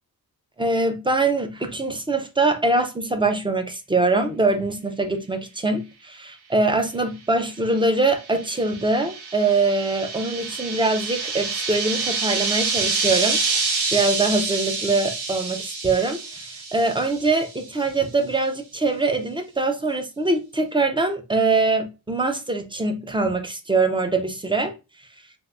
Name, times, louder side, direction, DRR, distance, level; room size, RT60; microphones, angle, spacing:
voice 1, 0.6-24.7, right 3 dB, 15° right, 0.4 m, -23 dB
sound 1, 7.8-17.6, right 4 dB, 90° right, 0.9 m, -27 dB
3.5 x 2.5 x 2.4 m
cardioid pair, 100°, 39 cm